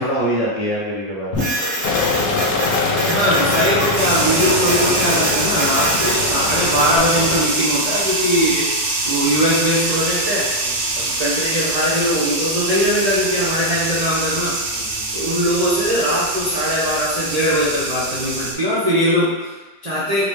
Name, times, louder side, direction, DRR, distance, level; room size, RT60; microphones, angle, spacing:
voice 1, 0.0-1.4 10.6-11.1 14.7-15.2, equal, 50° left, -4 dB, 1.2 m, -24 dB
Printer, 1.3-7.0, right 1 dB, 40° right, 0.9 m, -26 dB
sound 1, 1.8-7.5, left 4 dB, 75° left, 1.1 m, -23 dB
voice 2, 3.1-8.8 9.0-10.5 10.9-14.6 15.1-20.3, equal, 75° right, -7 dB, 0.3 m, -20 dB
sound 2, 4.0-18.5, right 2 dB, 60° right, 1.0 m, -24 dB
4.8 x 3.2 x 3.4 m, 1.2 s
omnidirectional pair, 1.9 m